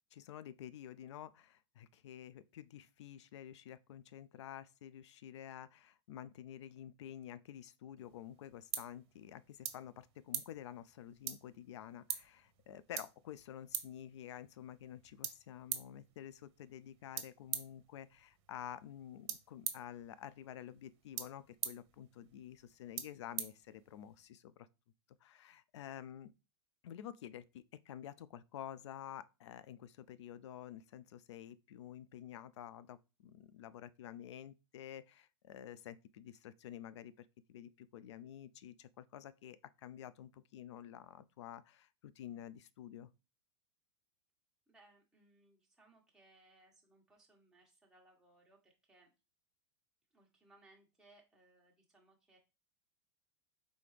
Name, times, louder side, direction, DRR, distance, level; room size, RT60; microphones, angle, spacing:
voice 1, 0.1-24.7 25.2-26.3 26.8-43.1, left 10 dB, 75° left, 0.5 m, -50 dB
sound 1, 8.0-24.2, right 10 dB, 65° right, 0.9 m, -47 dB
voice 2, 44.7-49.1 50.1-52.4, right 2 dB, 5° right, 1.4 m, -66 dB
4.1 x 3.5 x 3.3 m
hypercardioid pair, 120°, 15 cm